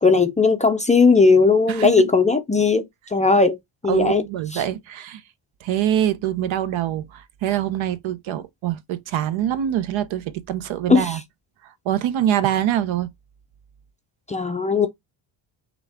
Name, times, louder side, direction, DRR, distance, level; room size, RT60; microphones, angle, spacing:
voice 1, 0.0-3.6 3.8-4.2 4.5-4.6 10.9-11.2 14.3-14.9, left 4 dB, 15° left, 0.4 m, -17 dB
voice 2, 1.7-2.1 3.9-5.2 5.6-11.2 11.8-13.1, right 11 dB, 70° right, 0.8 m, -24 dB
6.1 x 2.3 x 3.4 m
cardioid pair, 145°, 48 cm